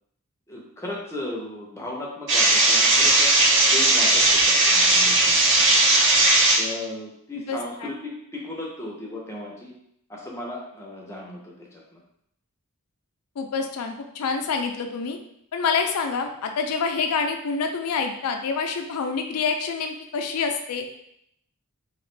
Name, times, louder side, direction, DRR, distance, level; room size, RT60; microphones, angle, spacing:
voice 1, 0.5-3.3 3.7-5.3 6.6-9.7 10.1-12.0, left 1 dB, 10° left, -3 dB, 0.6 m, -36 dB
sound 1, 2.3-6.6, right 2 dB, 55° right, 0.7 m, -18 dB
voice 2, 7.4-7.9 13.4-15.2 15.5-20.9, left 5 dB, 85° left, 5 dB, 0.4 m, -27 dB
2.9 x 2.4 x 3.2 m, 0.75 s
head